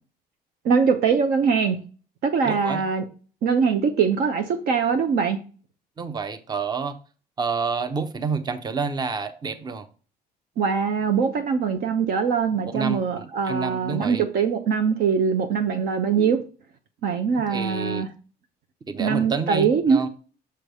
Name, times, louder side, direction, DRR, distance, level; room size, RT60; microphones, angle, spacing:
voice 1, 0.6-1.8 2.2-3.0 3.4-5.4 10.6-16.4 17.0-18.1 19.0-20.0, right 6 dB, 65° right, 0.8 m, -22 dB
voice 2, 2.4-2.8 6.0-7.0 7.4-9.9 12.6-14.2 17.3-18.0 18.9-20.1, right 5 dB, 25° right, 0.7 m, -29 dB
6.8 x 3.3 x 5.3 m
cardioid pair, 110°, 17 cm